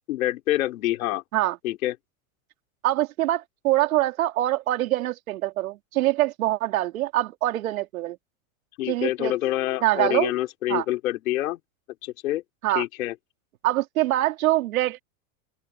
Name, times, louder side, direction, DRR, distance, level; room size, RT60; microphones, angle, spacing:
voice 1, 0.1-1.2 1.6-1.9 8.8-11.6 12.0-12.4 12.7-13.1, left 15 dB, 80° left, 4.6 m, -26 dB
voice 2, 2.8-8.2 8.9-9.3 9.8-10.3 10.7-10.9 12.6-12.8 13.6-15.0, right 15 dB, 90° right, 3.6 m, -24 dB
open air
supercardioid pair, 170°, 41 cm